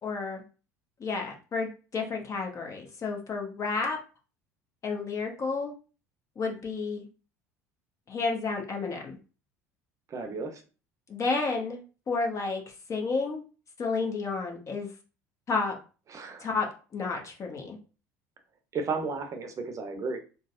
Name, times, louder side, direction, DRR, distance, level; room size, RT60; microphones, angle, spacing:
voice 1, 0.0-0.4 1.0-4.0 4.8-5.7 6.4-7.1 8.1-9.2 11.1-11.8 12.1-13.4 13.8-14.9 15.5-15.8 16.4-17.8, left 4 dB, 35° left, 2 dB, 0.9 m, -31 dB
voice 2, 10.1-10.6 16.1-16.5 18.7-20.2, right 4 dB, 35° right, 6 dB, 0.7 m, -33 dB
3.9 x 2.0 x 2.5 m, 0.35 s
hypercardioid pair, 65°, 9 cm